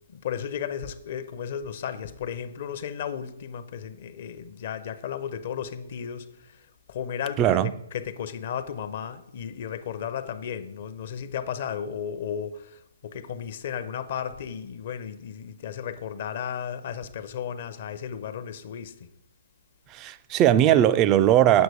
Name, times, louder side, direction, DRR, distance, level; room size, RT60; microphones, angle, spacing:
voice 1, 0.1-6.6 6.9-7.6 7.9-19.1, left 8 dB, 50° left, 0.6 m, -34 dB
voice 2, 7.4-7.7 19.9-21.6, right 11 dB, 25° right, 0.3 m, -19 dB
8.0 x 6.2 x 4.8 m
figure-of-eight pair, 130°, 0 cm